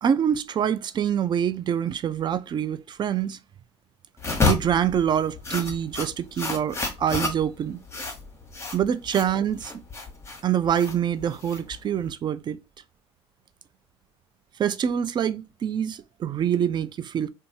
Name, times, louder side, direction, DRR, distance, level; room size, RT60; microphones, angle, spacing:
voice 1, 0.0-3.4 4.5-7.8 8.7-9.7 10.4-12.6 14.6-17.3, right 9 dB, 35° right, 0.3 m, -25 dB
sound 1, 4.2-12.1, left 3 dB, 20° left, 1.0 m, -30 dB
2.6 x 2.3 x 2.7 m
hypercardioid pair, 65°, 14 cm